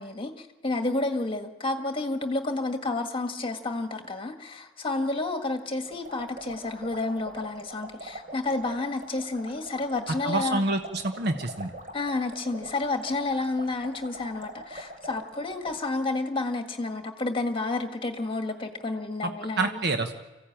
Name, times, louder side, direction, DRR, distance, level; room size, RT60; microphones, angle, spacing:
voice 1, 0.0-10.6 11.9-19.8, left 2 dB, 30° left, 5 dB, 1.7 m, -30 dB
sound 1, 5.8-15.8, right 1 dB, 45° right, 3.2 m, -43 dB
voice 2, 10.2-11.7 19.2-19.3 19.6-20.1, right 2 dB, 60° right, 6 dB, 1.2 m, -27 dB
25.0 x 16.0 x 8.7 m, 1.1 s
head